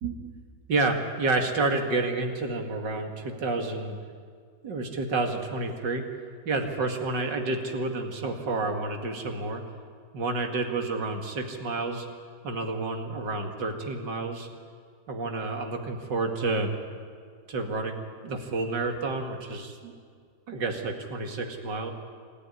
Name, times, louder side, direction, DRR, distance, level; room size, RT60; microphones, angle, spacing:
voice 1, 0.0-0.4 0.7-4.0 4.6-6.0 6.5-9.6 10.1-12.1 12.4-14.5 15.1-16.7 17.5-19.9 20.5-21.9, right 3 dB, 80° right, 4 dB, 2.7 m, -29 dB
27.5 x 13.5 x 10.0 m, 2.1 s
omnidirectional pair, 1.9 m